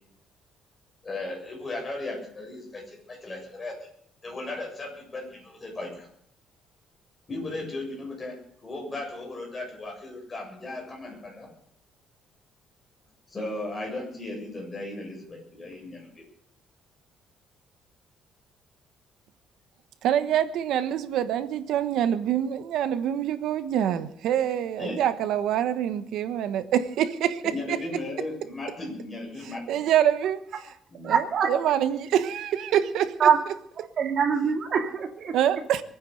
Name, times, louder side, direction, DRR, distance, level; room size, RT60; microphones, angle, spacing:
voice 1, 1.0-3.7 4.2-6.1 7.3-8.3 8.6-11.5 13.3-16.1 24.8-25.0 27.4-29.8 30.9-31.2, left 2 dB, 20° left, 7.5 m, -36 dB
voice 2, 20.0-27.4 27.7-27.8 29.7-30.4 31.0-33.3 35.3-35.8, right 10 dB, 75° right, 1.2 m, -25 dB
voice 3, 31.1-31.5 33.2-33.4 33.8-35.3, right 7 dB, 45° right, 2.3 m, -23 dB
23.0 x 9.6 x 6.6 m
cardioid pair, 160°, 0 cm